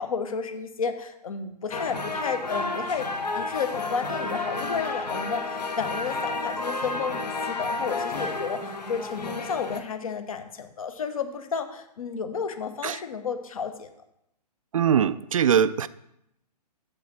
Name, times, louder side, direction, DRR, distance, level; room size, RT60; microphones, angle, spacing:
voice 1, 0.0-3.1 3.3-13.9, left 6 dB, 55° left, 8 dB, 1.1 m, -32 dB
sound 1, 1.7-9.8, left 3 dB, 75° left, 1.3 m, -31 dB
voice 2, 14.7-15.9, right 8 dB, 55° right, 16 dB, 0.4 m, -21 dB
6.7 x 6.6 x 6.2 m, 0.80 s
figure-of-eight pair, 125°, 21 cm